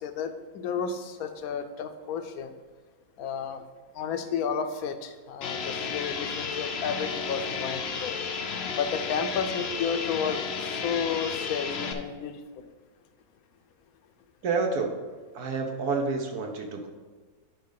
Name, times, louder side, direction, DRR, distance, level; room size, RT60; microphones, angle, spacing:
voice 1, 0.0-2.5 3.2-3.6 3.9-8.2 8.8-10.4 10.7-12.3, left 6 dB, 70° left, 8 dB, 1.1 m, -32 dB
sound 1, 5.4-11.9, left 5 dB, 55° left, 0.7 m, -33 dB
voice 2, 14.4-14.9 15.3-16.9, right 4 dB, 75° right, 3 dB, 1.4 m, -28 dB
10.5 x 4.9 x 4.0 m, 1.4 s
omnidirectional pair, 1.7 m